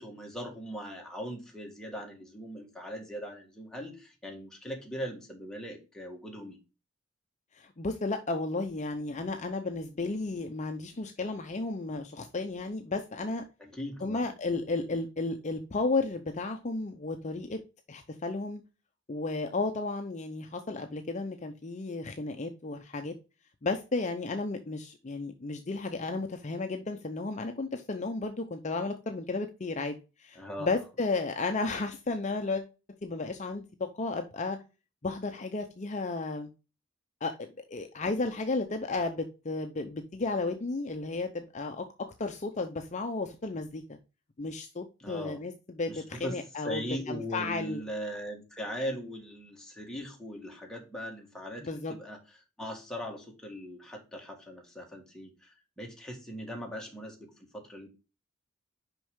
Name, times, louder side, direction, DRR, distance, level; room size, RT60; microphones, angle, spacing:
voice 1, 0.0-6.6 13.6-14.3 30.3-30.7 45.0-45.4 45.9-52.2 52.6-57.9, equal, 5° left, -1 dB, 1.8 m, -40 dB
voice 2, 7.5-13.4 14.0-17.6 17.9-18.6 19.1-23.1 23.6-32.6 33.0-33.6 33.9-34.6 35.0-36.5 37.2-41.9 42.2-43.8 44.4-47.8 51.6-51.9, left 3 dB, 35° left, 6 dB, 0.6 m, -33 dB
6.0 x 5.4 x 3.6 m, 0.30 s
head